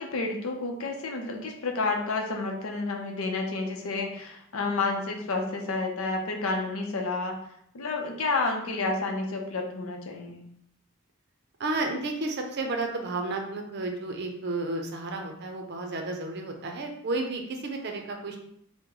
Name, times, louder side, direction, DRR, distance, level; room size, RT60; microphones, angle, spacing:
voice 1, 0.0-7.4 7.7-10.5, left 3 dB, 80° left, 2 dB, 0.6 m, -30 dB
voice 2, 11.6-18.4, right 2 dB, 50° right, 3 dB, 0.5 m, -32 dB
3.0 x 2.1 x 3.7 m, 0.71 s
head